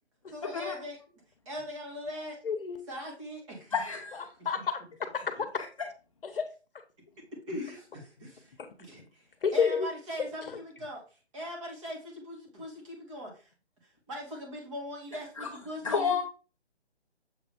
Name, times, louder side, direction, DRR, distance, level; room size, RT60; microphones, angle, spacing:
voice 1, 0.3-1.0 1.5-2.4 2.9-3.7 7.5-8.5 8.8-9.3 9.5-11.0 11.3-13.5 14.1-16.2, left 1 dB, 25° right, -1 dB, 2.3 m, -40 dB
voice 2, 2.4-2.8 4.1-4.8 5.1-5.5 6.2-6.5 9.4-9.9 10.5-10.6, left 6 dB, 55° left, 8 dB, 1.1 m, -30 dB
voice 3, 3.7-4.2 5.6-5.7 15.4-15.5 15.8-16.2, left 6 dB, 30° left, 0 dB, 0.7 m, -30 dB
7.3 x 3.6 x 3.5 m, 0.35 s
hypercardioid pair, 160°, 34 cm